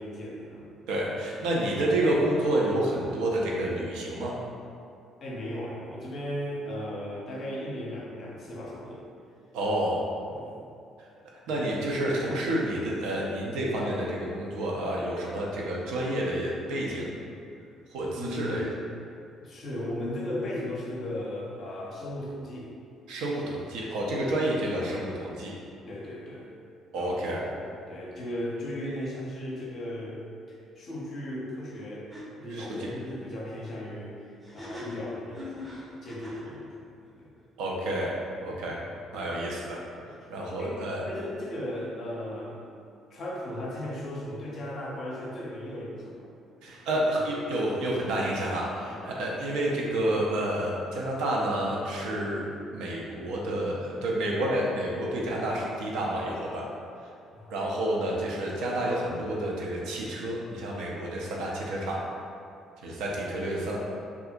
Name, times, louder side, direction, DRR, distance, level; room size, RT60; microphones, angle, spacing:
voice 1, 0.0-0.7 5.2-9.1 10.3-10.5 11.5-11.7 18.1-18.8 19.4-22.7 24.2-24.3 25.9-26.5 26.9-30.2 30.5-32.1 32.4-37.3 40.0-40.1 40.6-42.7 43.1-46.3 46.8-47.0 48.9-49.4 57.3-57.6, left 1 dB, 45° left, -4 dB, 0.5 m, -37 dB
voice 2, 0.9-4.4 9.5-10.0 11.0-11.1 11.5-17.4 17.9-18.7 23.1-25.5 26.9-27.4 32.5-32.9 37.6-38.8 39.1-39.8 40.3-41.0 46.6-52.4 52.7-56.6 57.5-62.0 62.8-63.8, right 1 dB, 60° right, -3 dB, 0.4 m, -29 dB
sound 1, 31.7-31.8 32.1-32.2 34.4-36.5, left 1 dB, 20° right, 0.6 m, -41 dB
2.7 x 2.4 x 2.5 m, 2.4 s
figure-of-eight pair, 45°, 0 cm